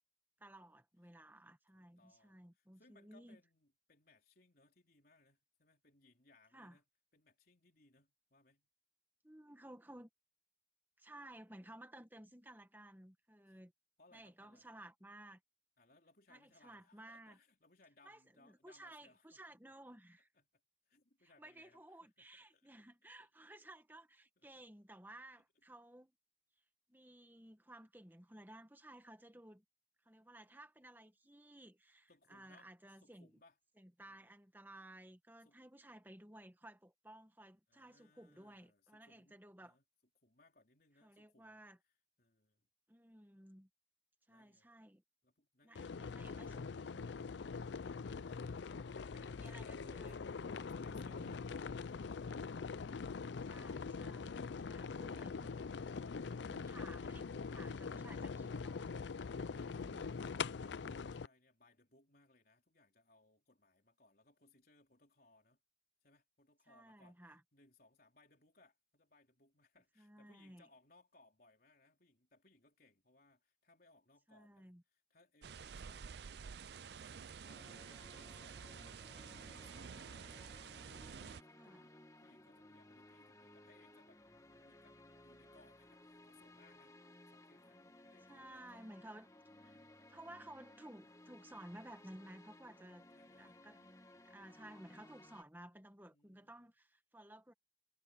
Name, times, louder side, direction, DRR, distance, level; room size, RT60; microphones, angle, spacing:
voice 1, 0.4-3.4 6.5-6.8 9.2-10.1 11.0-13.7 14.1-15.4 16.3-17.4 18.0-20.3 21.2-26.1 26.9-29.6 30.0-33.4 33.8-39.8 41.0-41.8 42.9-43.7 44.3-45.0 45.6-47.1 49.1-50.2 50.6-51.5 53.5-55.6 56.4-59.0 59.6-60.0 66.7-67.4 70.0-70.7 74.3-74.8 81.5-81.8 88.3-89.3 89.6-89.8 90.1-93.1 93.4-93.9 94.2-97.5, right 1 dB, 10° right, 1.5 m, -56 dB
voice 2, 1.7-6.8 7.1-8.7 13.5-13.6 14.0-14.7 15.8-19.6 20.3-20.5 20.9-22.7 23.2-23.3 24.4-24.5 32.1-33.6 34.0-34.3 35.4-35.6 37.7-39.8 40.2-41.7 42.2-42.6 44.3-44.7 45.2-46.1 47.5-49.6 50.2-52.7 54.5-54.6 59.5-65.6 66.0-80.4 80.9-81.2 81.5-84.2 84.5-87.0 87.3-87.8 88.1-88.9 89.6-90.0 93.1-93.7 96.0-96.5, left 2 dB, 50° left, 4.5 m, -69 dB
sound 1, 45.8-61.3, left 5 dB, 70° left, 0.5 m, -43 dB
sound 2, 75.4-81.4, right 6 dB, 60° right, 0.5 m, -50 dB
sound 3, 77.5-95.4, left 1 dB, 20° left, 2.2 m, -60 dB
head